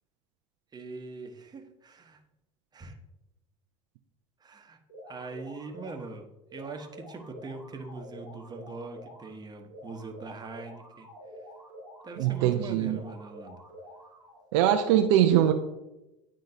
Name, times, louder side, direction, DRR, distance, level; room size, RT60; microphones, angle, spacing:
voice 1, 0.7-2.2 2.7-3.0 4.4-4.8 5.1-6.3 6.5-11.1 12.0-13.6, right 3 dB, 25° right, 5 dB, 1.0 m, -42 dB
sound 1, 4.9-6.1 6.5-9.3 9.7-12.5 12.9-14.5, equal, 85° left, 2.0 m, -48 dB
voice 2, 12.2-13.0 14.5-15.5, right 11 dB, 70° right, 6 dB, 0.5 m, -22 dB
9.3 x 3.7 x 2.7 m, 0.93 s
hypercardioid pair, 70°, 16 cm